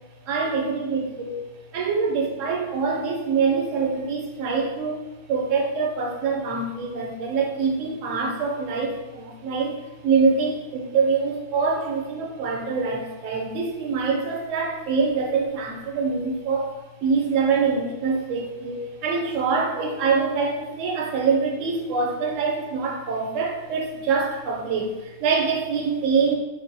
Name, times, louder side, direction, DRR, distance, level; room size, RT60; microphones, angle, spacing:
voice 1, 0.3-1.4 1.7-26.4, right 5 dB, 80° right, 0 dB, 0.9 m, -25 dB
3.8 x 2.1 x 2.6 m, 1.1 s
omnidirectional pair, 1.3 m